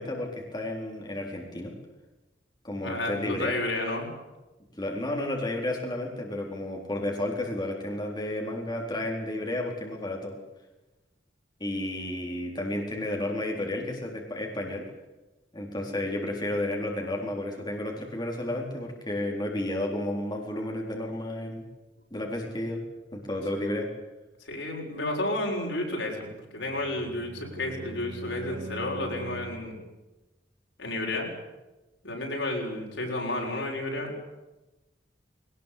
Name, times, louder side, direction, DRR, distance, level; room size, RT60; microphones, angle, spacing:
voice 1, 0.0-1.7 2.6-3.5 4.8-10.4 11.6-14.8 15.5-21.7 22.1-22.8 23.1-23.9, left 1 dB, 25° left, 0 dB, 4.0 m, -32 dB
voice 2, 2.8-4.1 24.4-29.8 30.8-31.3 32.0-34.1, left 1 dB, 85° left, 0 dB, 6.9 m, -31 dB
Bowed string instrument, 26.6-29.8, right 1 dB, 40° right, 5.4 m, -42 dB
21.5 x 19.5 x 8.5 m, 1.1 s
head